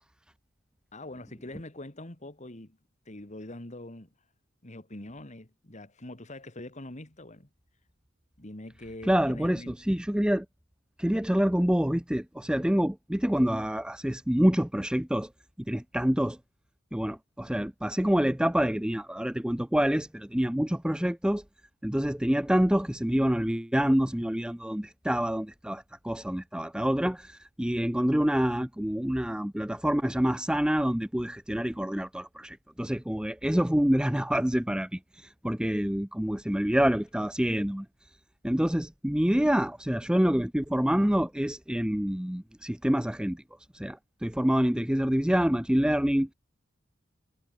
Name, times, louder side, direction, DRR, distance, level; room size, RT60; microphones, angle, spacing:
voice 1, 0.9-2.8 3.1-4.1 4.6-7.5 8.4-9.8, left 1 dB, 35° left, 2.2 m, -43 dB
voice 2, 9.0-10.5 11.0-15.3 15.7-16.4 16.9-21.4 21.8-37.9 38.4-43.4 43.7-46.3, equal, 5° right, 0.6 m, -27 dB
head